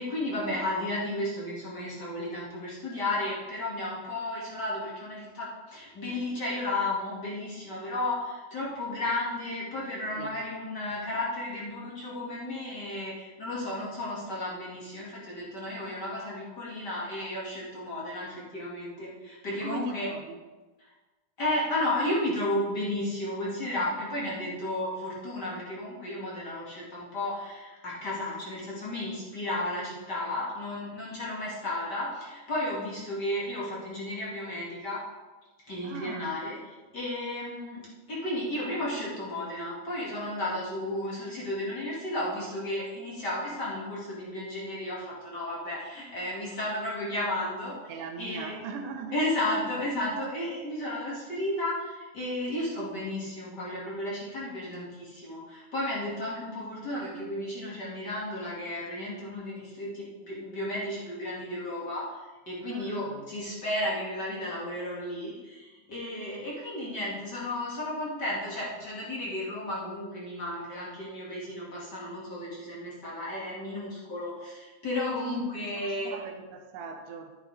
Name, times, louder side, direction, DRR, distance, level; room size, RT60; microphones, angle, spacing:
voice 1, 0.0-20.1 21.4-35.0 35.7-36.6 36.9-47.9 48.2-48.6 49.1-62.1 62.5-76.1, left 1 dB, 35° left, -6 dB, 2.5 m, -33 dB
voice 2, 19.5-20.4 35.8-36.4 47.9-49.2 62.7-63.3 75.2-77.4, right 5 dB, 90° right, 4 dB, 2.6 m, -40 dB
11.0 x 9.6 x 3.5 m, 1.2 s
omnidirectional pair, 3.6 m